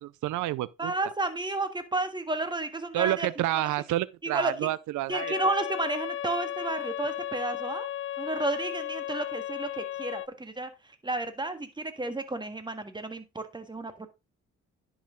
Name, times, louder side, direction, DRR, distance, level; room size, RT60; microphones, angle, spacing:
voice 1, 0.0-0.9 2.9-5.5, right 15 dB, 80° right, 0.6 m, -29 dB
voice 2, 0.8-3.3 4.2-4.5 5.1-7.9 8.2-10.7 11.0-14.1, right 2 dB, 15° right, 1.7 m, -32 dB
sound 1, 5.1-10.3, left 12 dB, 45° left, 0.4 m, -35 dB
10.5 x 6.0 x 3.8 m
cardioid pair, 90°, 30 cm